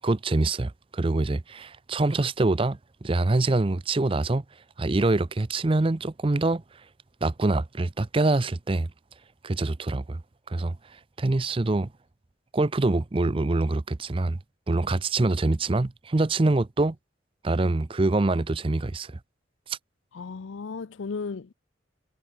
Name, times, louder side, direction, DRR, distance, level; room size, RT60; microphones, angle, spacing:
voice 1, 0.0-4.4 4.8-6.6 7.2-8.9 9.4-10.2 10.5-10.8 11.2-11.9 12.5-14.4 14.7-17.0 17.4-19.2 19.7-19.8, right 2 dB, 30° right, 0.5 m, -25 dB
voice 2, 20.1-21.5, left 4 dB, 85° left, 0.5 m, -35 dB
head